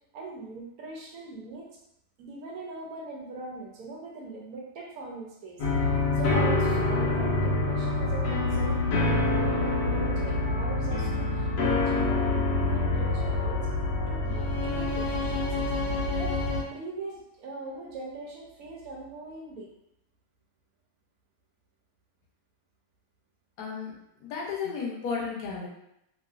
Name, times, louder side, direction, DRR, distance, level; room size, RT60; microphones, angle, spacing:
voice 1, 0.1-1.7 2.2-5.8 6.1-13.7 14.1-15.9 16.2-16.4 16.7-19.7, right 3 dB, 70° right, -2 dB, 1.0 m, -41 dB
sound 1, 5.6-16.6, left 2 dB, 90° left, 1.2 m, -26 dB
voice 2, 23.6-23.9 24.2-25.7, left 5 dB, 75° left, -2 dB, 1.1 m, -33 dB
3.0 x 2.5 x 2.3 m, 0.80 s
omnidirectional pair, 1.7 m